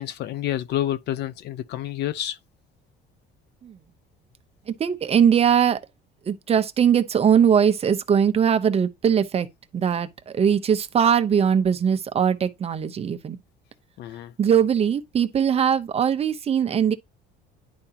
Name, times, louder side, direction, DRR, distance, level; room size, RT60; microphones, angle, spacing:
voice 1, 0.0-2.4 14.0-14.3, left 12 dB, 65° left, 0.8 m, -29 dB
voice 2, 4.7-5.8 6.3-9.5 9.7-13.4 14.4-16.9, right 8 dB, 35° right, 0.9 m, -21 dB
10.5 x 4.9 x 2.9 m
cardioid pair, 130°, 19 cm